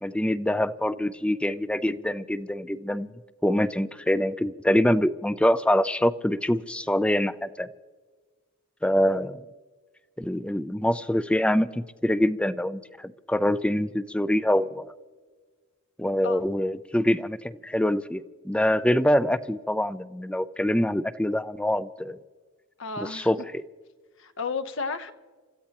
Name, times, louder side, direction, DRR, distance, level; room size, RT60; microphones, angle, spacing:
voice 1, 0.0-3.1 3.4-7.7 8.8-9.4 10.2-15.0 16.0-22.2 23.0-23.6, left 1 dB, 5° left, 14 dB, 0.4 m, -25 dB
voice 2, 22.8-23.3 24.2-25.1, left 4 dB, 65° left, 11 dB, 1.0 m, -32 dB
30.0 x 14.5 x 2.9 m, 1.4 s
head